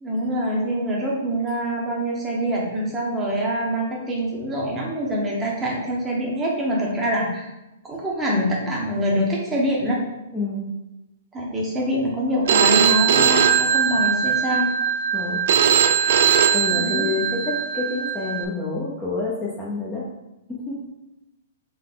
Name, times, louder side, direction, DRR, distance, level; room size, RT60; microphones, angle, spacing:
voice 1, 0.0-7.5 7.8-10.0 11.3-14.7 16.7-17.1, equal, 15° right, -3 dB, 1.1 m, -25 dB
voice 2, 10.3-10.7 15.1-15.5 16.5-20.1 20.5-20.8, left 3 dB, 10° left, -7 dB, 0.8 m, -28 dB
Telephone, 12.5-18.4, right 8 dB, 60° right, 0.4 m, -20 dB
3.9 x 3.5 x 3.8 m, 0.94 s
hypercardioid pair, 155°, 0 cm